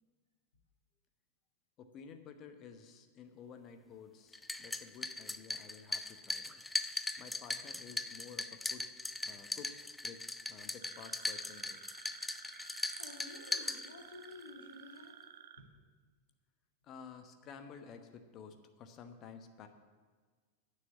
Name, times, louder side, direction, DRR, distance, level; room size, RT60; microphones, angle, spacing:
voice 1, 1.8-6.6 7.2-8.9 9.2-11.8 16.8-19.7, left 6 dB, 35° left, 7 dB, 1.0 m, -52 dB
sound 1, 4.3-14.3, left 2 dB, 5° left, 0.4 m, -40 dB
sound 2, 10.8-15.6, right 8 dB, 60° right, 0.7 m, -53 dB
voice 2, 12.7-15.2, left 3 dB, 75° left, 1 dB, 1.7 m, -52 dB
9.3 x 6.6 x 8.2 m, 1.5 s
figure-of-eight pair, 90°, 0 cm